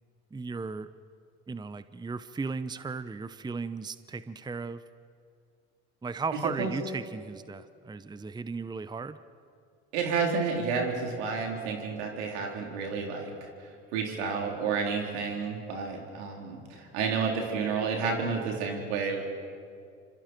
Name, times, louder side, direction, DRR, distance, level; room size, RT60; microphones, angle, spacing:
voice 1, 0.3-0.9 1.5-4.8 6.0-9.2, right 4 dB, 10° right, 13 dB, 0.7 m, -36 dB
voice 2, 9.9-13.3 13.6-19.4, right 5 dB, 80° right, 0 dB, 3.8 m, -30 dB
28.0 x 25.5 x 4.6 m, 2.3 s
hypercardioid pair, 70°, 34 cm